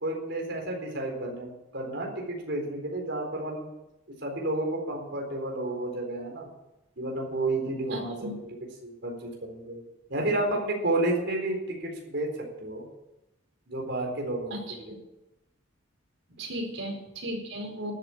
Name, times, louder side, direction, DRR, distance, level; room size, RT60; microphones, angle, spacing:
voice 1, 0.0-3.7 4.2-6.5 7.0-8.3 8.8-9.8 10.1-12.8 13.7-14.6 14.9-15.0, right 2 dB, 60° right, 1 dB, 4.1 m, -31 dB
voice 2, 7.9-8.3 14.5-14.8 16.4-17.9, right 1 dB, 85° right, 1 dB, 4.8 m, -35 dB
13.0 x 8.4 x 9.9 m, 0.95 s
head